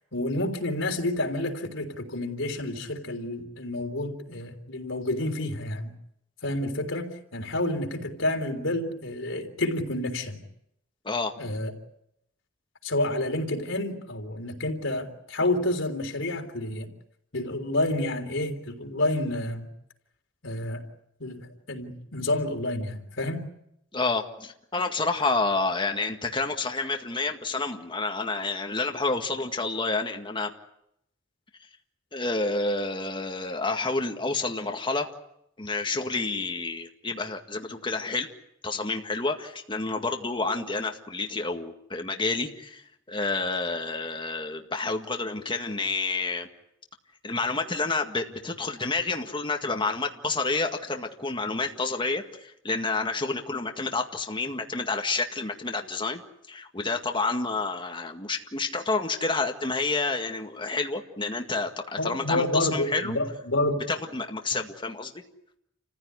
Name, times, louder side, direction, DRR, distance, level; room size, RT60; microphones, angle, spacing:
voice 1, 0.1-5.9 6.4-10.4 11.4-11.7 12.8-16.9 17.3-19.7 20.4-20.8 21.2-23.5 62.0-63.8, left 1 dB, 85° left, 4 dB, 3.6 m, -29 dB
voice 2, 23.9-30.5 32.1-35.1 35.6-38.3 38.6-42.8 43.1-46.5 47.2-56.2 56.5-63.2 63.9-65.1, left 3 dB, 25° left, 4 dB, 1.9 m, -29 dB
29.0 x 15.5 x 9.7 m, 0.78 s
head